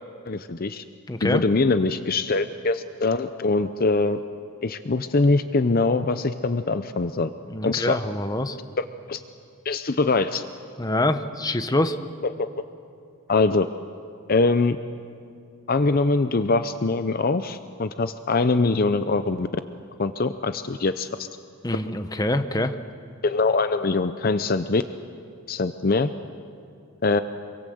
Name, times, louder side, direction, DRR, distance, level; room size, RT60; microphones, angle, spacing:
voice 1, 0.3-0.8 1.2-4.2 4.6-7.3 7.6-8.0 8.8-9.2 9.6-10.5 12.2-12.5 13.3-13.7 14.3-14.8 15.7-19.5 20.0-21.3 23.2-24.8 25.5-26.1 27.0-27.2, left 3 dB, 40° left, 11 dB, 0.6 m, -23 dB
voice 2, 1.1-1.4 7.5-8.6 10.8-12.0 21.6-22.8, left 1 dB, 15° left, 9 dB, 0.9 m, -25 dB
26.5 x 23.5 x 7.8 m, 2.4 s
head